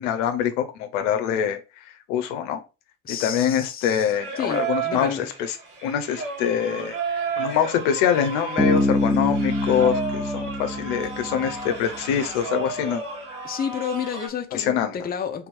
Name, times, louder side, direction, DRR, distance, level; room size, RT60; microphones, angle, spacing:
voice 1, 0.0-2.6 3.2-5.6 5.8-13.0 14.5-15.0, left 9 dB, 70° left, 0.7 m, -24 dB
voice 2, 3.0-5.3 13.4-15.5, left 7 dB, 25° left, 0.7 m, -31 dB
Singing, 4.1-14.3, right 5 dB, 55° right, 2.0 m, -33 dB
Bass guitar, 8.6-12.1, left 1 dB, 10° right, 1.0 m, -25 dB
3.4 x 3.0 x 3.4 m
hypercardioid pair, 65°, 38 cm